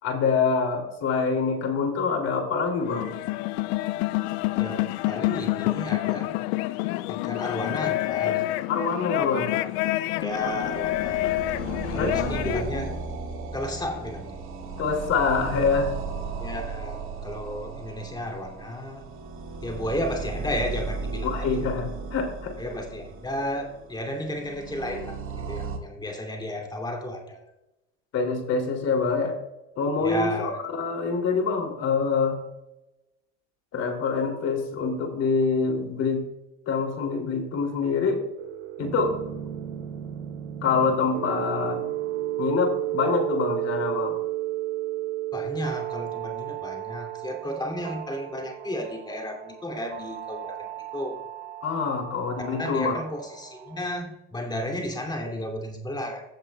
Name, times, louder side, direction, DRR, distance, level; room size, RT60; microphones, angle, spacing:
voice 1, 0.0-3.1 8.7-9.5 10.4-10.5 11.9-12.9 14.8-15.9 21.2-22.5 28.1-29.3 29.8-32.4 33.7-36.2 36.7-38.2 38.8-39.1 40.6-41.8 42.4-44.2 51.6-53.0, left 5 dB, 50° left, 3 dB, 3.0 m, -25 dB
sound 1, 2.8-12.7, left 17 dB, 70° left, 0.6 m, -28 dB
voice 2, 4.6-6.3 7.1-8.5 10.2-11.3 11.9-12.9 13.5-14.4 16.4-19.0 19.6-21.5 22.6-27.4 30.0-30.6 45.3-50.7 50.9-51.2 52.6-56.2, left 1 dB, 15° left, 2 dB, 2.8 m, -33 dB
sound 2, 10.2-25.8, right 4 dB, 40° right, 1.9 m, -35 dB
sound 3, 38.4-53.9, right 14 dB, 90° right, 1.1 m, -34 dB
15.5 x 7.4 x 2.4 m, 0.92 s
supercardioid pair, 100°, 33 cm